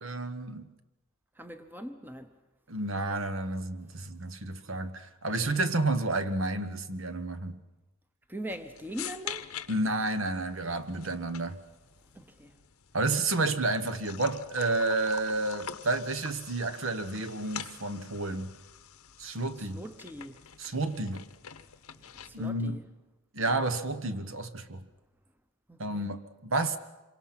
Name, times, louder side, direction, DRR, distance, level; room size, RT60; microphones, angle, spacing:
voice 1, 0.0-0.7 2.7-7.6 9.7-11.6 12.9-18.5 19.2-19.8 20.6-21.2 22.3-22.8 23.3-24.8 25.8-26.8, right 2 dB, 60° right, 1.1 m, -30 dB
voice 2, 1.4-2.3 8.3-9.5 12.1-12.5 19.6-20.4 22.1-22.8 25.7-26.1, equal, 10° right, 0.9 m, -42 dB
sound 1, 8.5-22.5, left 9 dB, 85° left, 0.9 m, -46 dB
26.5 x 24.0 x 5.9 m
head